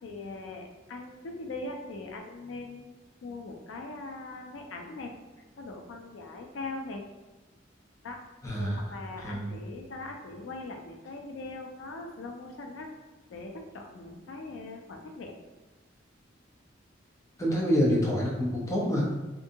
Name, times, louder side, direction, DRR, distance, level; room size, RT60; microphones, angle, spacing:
voice 1, 0.0-2.9 3.2-5.1 5.6-7.0 8.0-8.2 8.5-12.9 13.3-15.3, left 2 dB, 75° left, 3 dB, 0.4 m, -41 dB
voice 2, 8.4-8.8 9.2-9.5 17.4-19.0, equal, 15° left, -4 dB, 0.5 m, -26 dB
2.7 x 2.5 x 2.5 m, 1.1 s
head